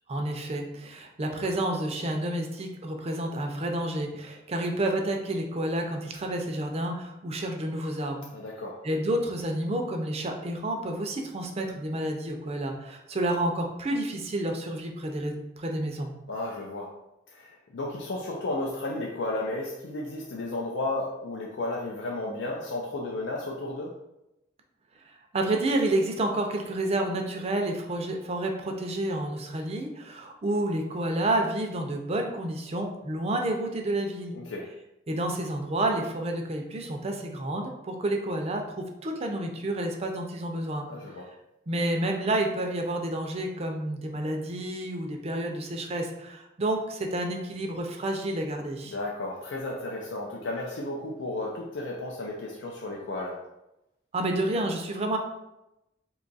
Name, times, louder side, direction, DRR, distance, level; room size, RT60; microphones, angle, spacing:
voice 1, 0.1-8.2 8.8-16.1 25.1-34.4 35.1-40.9 41.7-49.0 54.1-55.2, right 1 dB, 35° right, 3 dB, 0.5 m, -30 dB
voice 2, 8.3-8.8 16.3-16.9 17.3-23.9 34.3-34.7 40.9-41.3 48.9-53.4, left 2 dB, 75° left, -2 dB, 0.5 m, -33 dB
2.8 x 2.3 x 3.9 m, 0.90 s
head